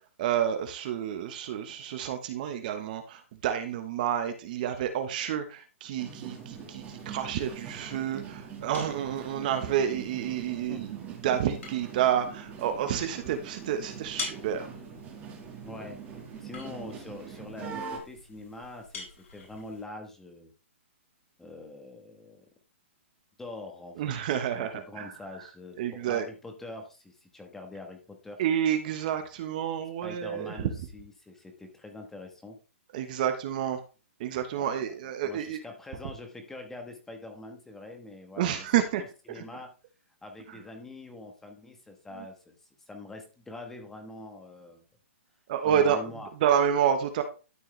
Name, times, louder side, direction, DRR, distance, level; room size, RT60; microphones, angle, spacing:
voice 1, 0.2-14.7 24.0-25.1 25.8-26.3 28.4-30.6 32.9-33.8 34.2-35.6 38.4-39.0 39.3-39.4 40.5-40.6 42.2-42.3 45.5-47.2, right 9 dB, 40° right, 8 dB, 1.1 m, -29 dB
sound 1, 6.0-18.0, right 6 dB, 20° right, 1.7 m, -43 dB
sound 2, 6.4-19.8, left 4 dB, 85° left, 4.0 m, -47 dB
voice 2, 15.6-20.5 21.4-22.4 23.4-24.1 24.5-28.4 30.0-32.6 34.5-34.8 35.2-38.7 39.0-39.7 40.2-42.6 42.9-44.8 45.6-46.3, left 2 dB, 5° left, 4 dB, 1.3 m, -44 dB
12.5 x 4.6 x 3.3 m, 0.33 s
hypercardioid pair, 160°, 7 cm